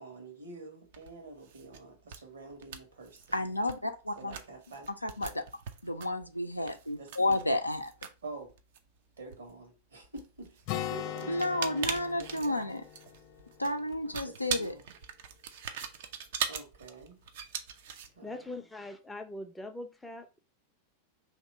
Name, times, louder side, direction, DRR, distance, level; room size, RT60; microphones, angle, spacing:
voice 1, 0.0-3.5 4.1-4.9 7.0-7.4 8.2-8.5 9.2-11.8 12.1-12.7 14.2-14.9 16.5-17.2 18.1-18.6, right 3 dB, 70° right, 1.3 m, -47 dB
sound 1, 0.9-1.1 1.4-1.8 2.0-2.2 2.5-3.4 3.7-3.8 4.2-9.5 10.0-18.1, right 7 dB, 55° right, 0.4 m, -40 dB
voice 2, 3.3-4.3 5.0-5.4 5.8-7.9 11.3-12.8 13.6-14.7, left 1 dB, 85° left, 0.4 m, -31 dB
Acoustic guitar, 10.7-14.4, left 12 dB, 45° left, 0.8 m, -40 dB
voice 3, 18.2-20.4, left 2 dB, 5° left, 0.5 m, -42 dB
2.9 x 2.9 x 4.2 m
figure-of-eight pair, 90°, 0 cm